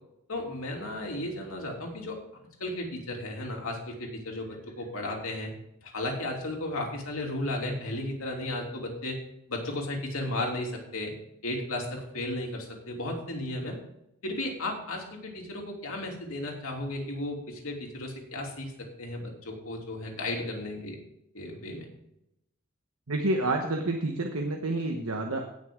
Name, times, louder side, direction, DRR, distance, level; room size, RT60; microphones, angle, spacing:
voice 1, 0.3-2.2 2.6-5.5 5.8-9.2 9.5-11.1 11.4-13.8 14.2-18.7 19.0-21.0 21.3-21.9, left 1 dB, 70° left, 0 dB, 3.0 m, -34 dB
voice 2, 23.1-25.5, right 2 dB, 70° right, 3 dB, 1.1 m, -29 dB
17.0 x 6.5 x 3.8 m, 0.81 s
head